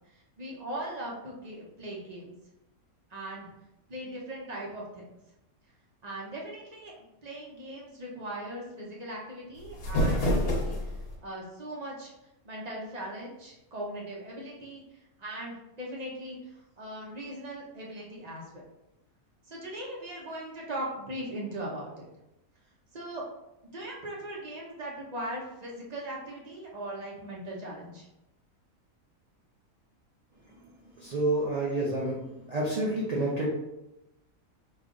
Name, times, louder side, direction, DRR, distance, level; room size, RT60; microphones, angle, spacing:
voice 1, 0.4-2.3 3.1-3.5 3.9-5.0 6.0-6.9 7.2-10.8 11.2-12.1 12.4-14.8 15.2-16.4 16.8-18.6 19.5-22.1 22.9-23.3 23.6-28.1, right 1 dB, 40° right, -3 dB, 0.7 m, -39 dB
sound 1, 9.5-11.2, equal, 85° left, 1.3 m, -27 dB
voice 2, 31.0-32.2 32.5-33.5, right 2 dB, 85° right, -5 dB, 0.3 m, -28 dB
3.2 x 2.4 x 3.7 m, 0.89 s
omnidirectional pair, 1.5 m